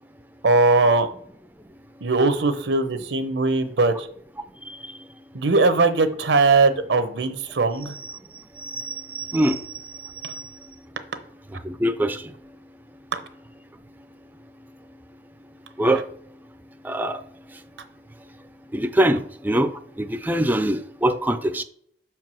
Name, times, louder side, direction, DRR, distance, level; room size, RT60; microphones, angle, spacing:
voice 1, 0.4-1.1 2.0-4.1 5.3-8.0 10.2-10.3 13.1-13.2, right 3 dB, 90° right, 0.8 m, -20 dB
voice 2, 8.8-9.5 11.7-12.2 15.8-16.0 16.8-17.2 18.7-19.2 19.4-19.7 20.0-21.6, right 1 dB, 10° right, 0.4 m, -22 dB
5.8 x 4.6 x 6.1 m
head